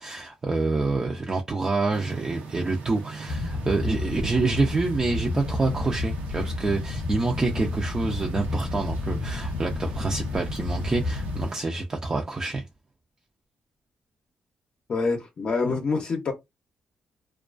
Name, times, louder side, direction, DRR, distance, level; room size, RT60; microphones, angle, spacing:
voice 1, 0.0-12.6, right 3 dB, 25° right, 0.4 m, -27 dB
sound 1, 1.9-11.6, right 4 dB, 85° right, 0.7 m, -42 dB
sound 2, 3.3-11.5, left 2 dB, 90° left, 0.5 m, -31 dB
voice 2, 14.9-16.3, left 4 dB, 45° left, 0.6 m, -26 dB
2.3 x 2.2 x 2.4 m
cardioid pair, 120°, 3 cm